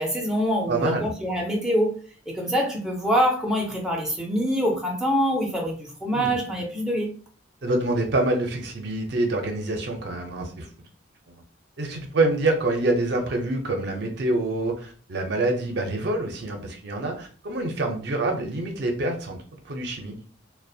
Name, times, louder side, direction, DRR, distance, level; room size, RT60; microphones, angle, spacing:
voice 1, 0.0-7.1, equal, 5° right, 0.4 m, -25 dB
voice 2, 0.7-1.1 6.1-6.4 7.6-10.7 11.8-20.2, right 2 dB, 60° right, 0.5 m, -26 dB
2.4 x 2.1 x 2.6 m
head